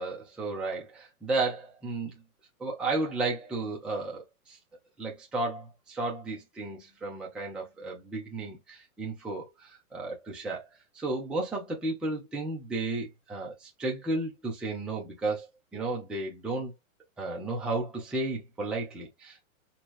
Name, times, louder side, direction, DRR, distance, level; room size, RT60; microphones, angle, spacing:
voice 1, 0.0-2.1 2.6-4.6 5.0-15.5 15.7-16.7 17.2-19.4, right 2 dB, ahead, 0.5 m, -33 dB
4.4 x 2.3 x 3.1 m
hypercardioid pair, 145°, 43 cm